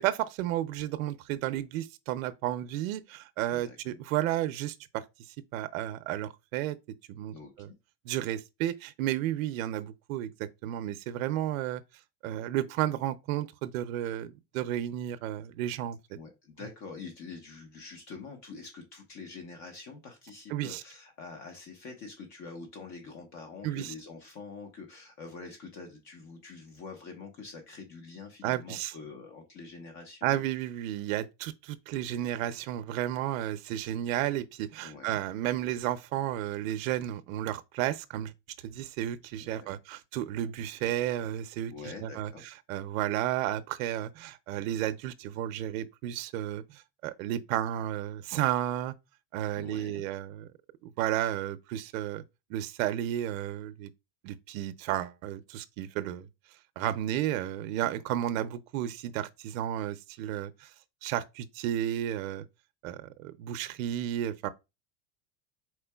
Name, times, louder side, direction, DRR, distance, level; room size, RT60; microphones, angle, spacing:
voice 1, 0.0-5.0 5.5-6.8 7.1-7.7 8.1-10.3 10.6-11.8 12.2-16.0 20.5-20.8 23.6-23.9 28.4-28.9 30.2-38.3 38.6-41.7 42.0-42.3 42.7-48.9 49.3-50.5 50.8-52.2 52.5-53.9 54.2-56.3 56.8-60.7 61.0-62.5 62.8-64.5, right 12 dB, 85° right, 0.6 m, -32 dB
voice 2, 7.3-7.8 16.1-30.5 34.8-35.2 39.4-39.7 41.7-42.4 49.5-50.0, left 4 dB, 45° left, 1.1 m, -45 dB
4.6 x 4.4 x 2.3 m
supercardioid pair, 135°, 39 cm